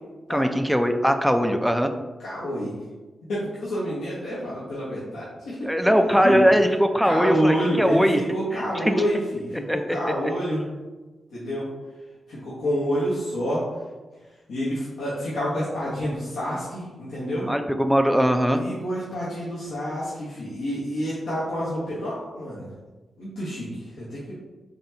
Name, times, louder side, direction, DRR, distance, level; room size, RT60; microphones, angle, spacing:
voice 1, 0.3-1.9 5.6-8.2 8.5-9.0 9.7-10.1 17.5-18.6, equal, ahead, 6 dB, 0.4 m, -21 dB
voice 2, 2.2-2.7 3.3-5.6 6.2-6.4 7.0-10.6 11.3-11.7 12.3-13.6 14.5-17.5 18.5-22.7 23.2-24.3, equal, 90° left, -9 dB, 1.0 m, -28 dB
4.0 x 3.2 x 2.8 m, 1.2 s
cardioid pair, 55°, 0 cm